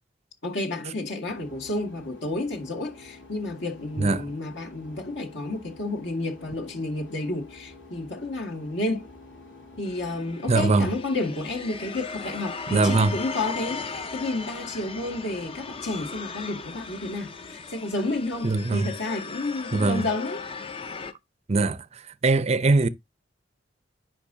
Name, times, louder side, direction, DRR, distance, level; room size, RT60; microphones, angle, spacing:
voice 1, 0.4-9.1 9.8-20.4, left 2 dB, 70° left, 2.0 m, -31 dB
sound 1, 1.2-19.6, left 3 dB, 85° left, 5.8 m, -49 dB
sound 2, 9.9-21.1, left 4 dB, 30° left, 0.6 m, -38 dB
voice 2, 10.5-10.9 12.7-13.1 18.4-18.9 19.7-20.0 21.5-21.8 22.2-22.9, right 3 dB, 35° right, 0.5 m, -21 dB
9.9 x 5.2 x 2.7 m
head